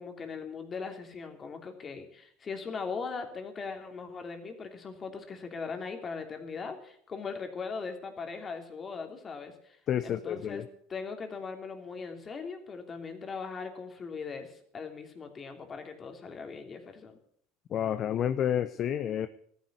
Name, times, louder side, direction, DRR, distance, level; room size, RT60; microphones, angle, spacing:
voice 1, 0.0-9.8 10.0-10.6 10.9-17.2, left 5 dB, 30° left, 5 dB, 3.1 m, -39 dB
voice 2, 9.9-10.6 17.7-19.3, left 10 dB, 45° left, 12 dB, 0.8 m, -29 dB
14.0 x 10.5 x 8.2 m, 0.63 s
supercardioid pair, 105°, 0 cm